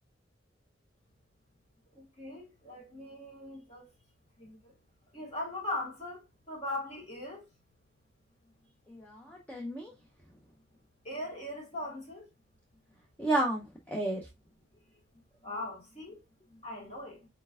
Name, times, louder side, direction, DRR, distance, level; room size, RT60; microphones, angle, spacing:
voice 1, 1.9-3.9 4.4-4.7 5.1-7.4 11.0-12.3 15.4-16.2 16.5-17.3, left 1 dB, 35° left, 1.7 m, -40 dB
voice 2, 8.9-9.9 13.2-14.2, right 1 dB, 10° left, 0.6 m, -32 dB
4.4 x 4.1 x 2.3 m
head